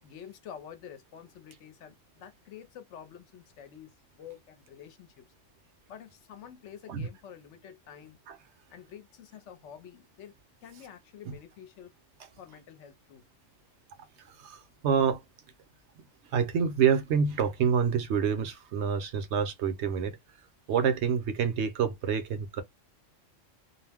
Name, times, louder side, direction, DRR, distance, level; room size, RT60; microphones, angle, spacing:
voice 1, 0.0-5.3 5.9-8.2 8.7-10.3 10.6-11.9 12.4-13.3, left 9 dB, 70° left, 0.9 m, -48 dB
voice 2, 14.3-15.2 16.3-20.2 20.7-22.6, right 7 dB, 70° right, 0.8 m, -27 dB
2.4 x 2.0 x 3.3 m
omnidirectional pair, 1.3 m